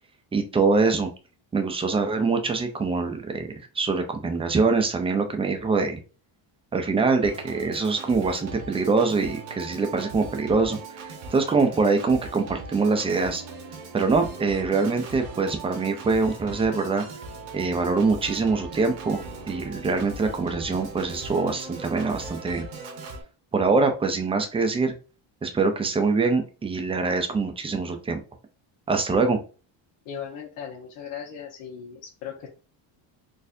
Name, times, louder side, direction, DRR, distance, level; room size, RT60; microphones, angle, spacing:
voice 1, 0.3-1.1 1.5-3.5 3.7-6.0 6.7-13.4 13.9-17.0 17.5-22.7 23.5-25.0 25.4-28.2 28.9-29.4, right 4 dB, 15° right, 5 dB, 0.4 m, -24 dB
Organ, 7.2-23.2, right 3 dB, 90° right, 1.2 m, -39 dB
voice 2, 30.0-32.5, left 8 dB, 85° left, -3 dB, 1.2 m, -38 dB
4.2 x 2.6 x 2.6 m, 0.34 s
cardioid pair, 140°, 50 cm